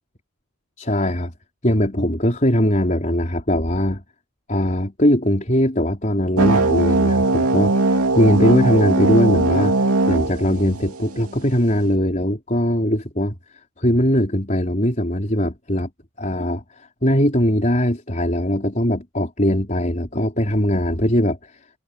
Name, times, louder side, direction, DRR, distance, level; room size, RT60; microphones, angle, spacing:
voice 1, 0.8-1.3 1.6-4.0 4.5-13.3 13.8-15.9 16.2-21.6, equal, 35° left, 4.5 m, -20 dB
sound 1, 6.4-11.4, right 2 dB, 85° right, 2.7 m, -19 dB
head